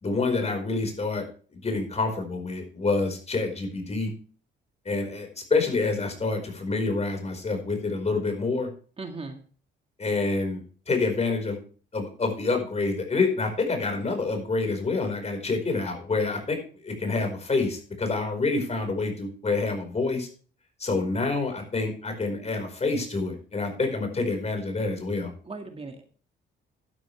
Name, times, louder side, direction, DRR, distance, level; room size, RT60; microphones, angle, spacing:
voice 1, 0.0-1.2 1.5-4.1 4.8-8.7 10.0-11.6 11.9-20.3 20.8-25.3, left 3 dB, 35° left, 5 dB, 4.9 m, -27 dB
voice 2, 9.0-9.4 25.5-26.1, right 3 dB, 30° right, 4 dB, 2.0 m, -37 dB
12.0 x 11.0 x 3.4 m, 0.42 s
cardioid pair, 90°, 20 cm